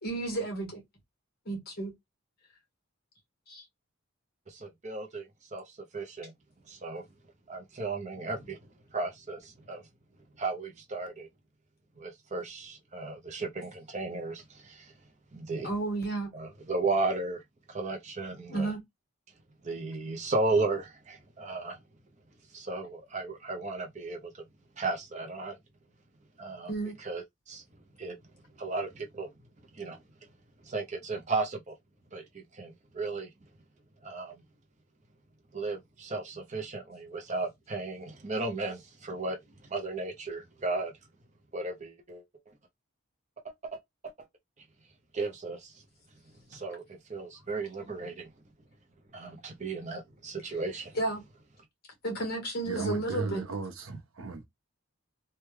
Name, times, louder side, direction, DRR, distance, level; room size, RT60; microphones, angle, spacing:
voice 1, 0.0-0.8 1.5-1.9 3.5-3.6 15.6-16.3 18.5-18.8 26.7-26.9 50.9-51.2 52.0-53.4, right 2 dB, 45° left, 1.3 m, -32 dB
voice 2, 4.5-5.6 5.9-6.3 6.7-7.0 7.5-8.6 8.9-9.8 10.4-11.3 12.0-14.9 15.3-15.7 16.3-17.4 17.7-18.7 19.6-21.8 22.5-24.3 24.8-25.6 26.4-26.7 27.0-27.6 28.0-28.2 28.6-29.3 29.8-30.0 30.7-31.7 32.1-33.3 34.0-34.4 35.5-39.4 39.7-40.9 41.5-42.2 43.7-43.8 45.1-45.7 46.5-48.3 49.1-51.0, right 3 dB, 35° right, 0.6 m, -34 dB
voice 3, 52.6-54.4, right 3 dB, 80° right, 0.8 m, -36 dB
3.2 x 2.2 x 3.1 m
head